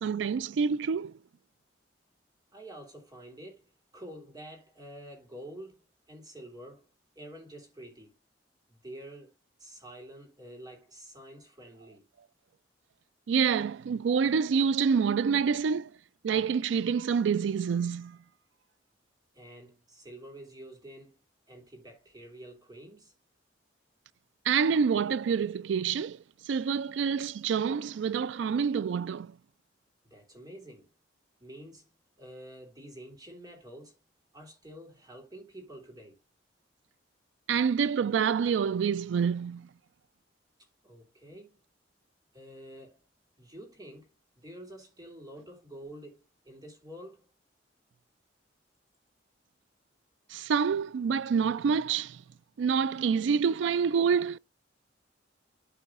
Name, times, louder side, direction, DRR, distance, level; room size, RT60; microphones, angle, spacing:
voice 1, 0.0-1.1 13.3-15.9 16.2-18.2 24.5-29.4 37.5-39.7 50.3-52.2 52.6-54.4, right 6 dB, 75° right, 0.3 m, -27 dB
voice 2, 2.5-6.9 7.1-8.1 8.7-9.3 9.6-12.1 19.3-21.2 21.5-23.1 30.1-30.9 31.4-31.9 32.2-34.0 34.3-36.2 40.8-41.6 42.3-43.0 43.4-47.3, right 1 dB, 20° right, 3.2 m, -48 dB
12.5 x 4.5 x 2.5 m
head